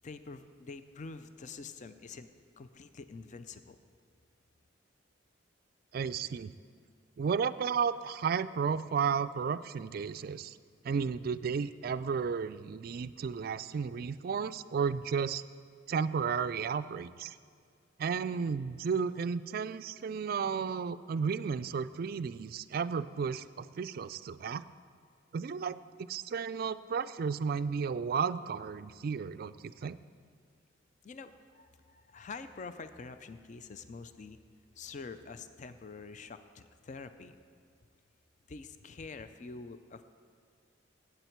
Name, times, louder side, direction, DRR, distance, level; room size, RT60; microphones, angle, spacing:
voice 1, 0.0-2.3 2.6-3.8 31.0-34.4 34.8-37.4 38.5-40.0, left 4 dB, 40° left, 11 dB, 0.4 m, -46 dB
voice 2, 5.9-6.5 7.2-10.6 10.8-15.4 15.9-17.4 18.0-24.6 25.3-30.0, right 6 dB, 50° right, 14 dB, 0.3 m, -33 dB
16.0 x 7.9 x 4.5 m, 2.1 s
head